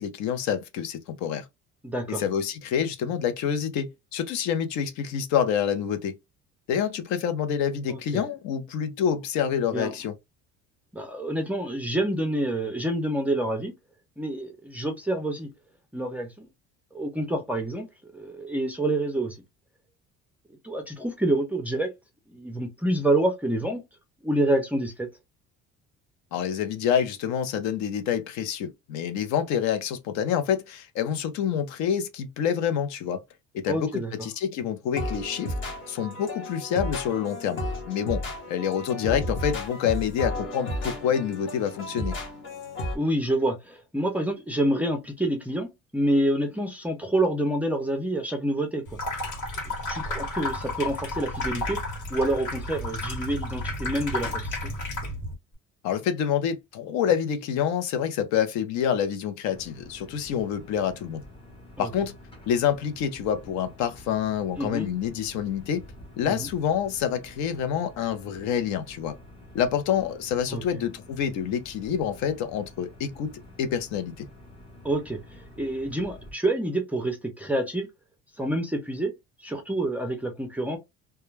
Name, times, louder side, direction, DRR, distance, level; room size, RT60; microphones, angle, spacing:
voice 1, 0.0-1.5 2.2-6.1 6.7-10.2 26.3-33.2 33.5-35.5 35.9-42.2 55.8-61.2 61.8-62.1 62.5-65.9 66.2-69.1 69.5-74.3, left 8 dB, 70° left, 0.6 m, -27 dB
voice 2, 1.8-2.2 7.9-8.2 9.7-9.9 10.9-13.7 14.2-15.5 15.9-16.5 16.9-17.9 18.1-19.4 20.6-21.9 22.3-23.8 24.2-25.1 33.7-34.3 39.1-39.2 42.9-48.9 49.7-51.8 52.1-54.7 61.8-61.9 64.6-64.9 66.3-66.5 70.5-70.6 74.8-77.9 78.4-79.1 79.4-80.8, right 1 dB, 5° right, 0.4 m, -27 dB
sound 1, 34.9-43.0, left 1 dB, 40° left, 0.9 m, -33 dB
Water tap faucet / Sink (filling or washing), 48.9-55.3, left 2 dB, 85° left, 1.3 m, -32 dB
sound 2, 59.5-76.3, left 1 dB, 20° left, 0.7 m, -48 dB
2.2 x 2.2 x 3.1 m
cardioid pair, 160°, 29 cm